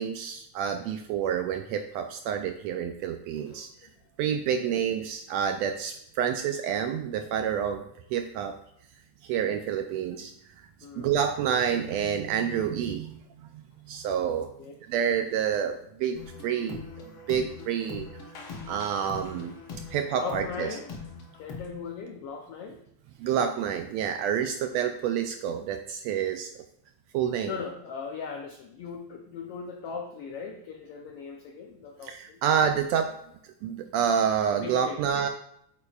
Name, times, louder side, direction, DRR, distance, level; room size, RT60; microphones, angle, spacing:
voice 1, 0.0-3.7 4.2-7.8 8.1-8.5 9.2-10.3 11.0-13.2 13.5-14.5 14.9-16.8 17.3-18.1 18.7-19.5 19.9-20.7 23.2-26.5 27.1-27.5 32.0-33.2 33.6-35.3, right 8 dB, 80° right, 6 dB, 1.6 m, -28 dB
voice 2, 3.3-3.9 10.8-11.1 14.3-14.8 18.2-18.3 20.1-20.9 21.4-22.8 27.5-32.4 34.5-35.0, left 5 dB, 85° left, 3 dB, 1.3 m, -39 dB
sound 1, 16.1-21.7, left 4 dB, 55° left, 1.7 m, -42 dB
8.6 x 8.4 x 2.4 m, 0.73 s
omnidirectional pair, 3.4 m